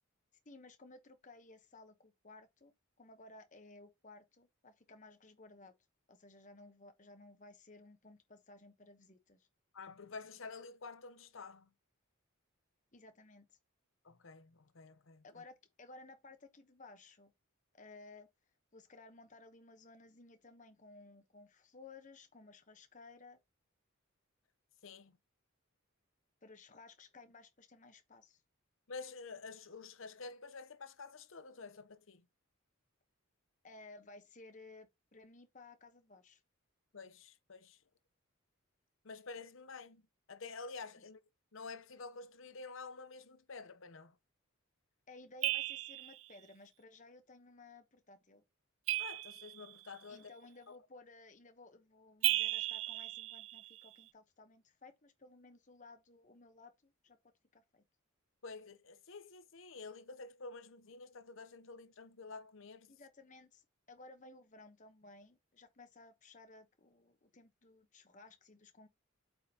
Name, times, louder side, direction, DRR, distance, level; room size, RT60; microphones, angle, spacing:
voice 1, 0.4-2.7 3.0-5.8 6.1-9.5 12.9-13.6 15.2-17.3 17.7-18.3 18.7-23.4 26.4-28.4 33.6-36.4 41.0-41.1 45.1-48.4 50.1-57.2 57.5-57.8 62.9-68.9, left 3 dB, 35° left, 1.1 m, -57 dB
voice 2, 9.7-11.7 14.0-15.2 24.8-25.2 28.9-32.3 36.9-37.8 39.0-41.2 41.5-44.2 49.0-50.3 58.4-62.9, left 4 dB, 65° left, 0.8 m, -49 dB
sound 1, 45.4-46.2 48.9-49.9 52.2-53.9, right 15 dB, 65° right, 0.4 m, -35 dB
8.3 x 5.3 x 2.9 m
head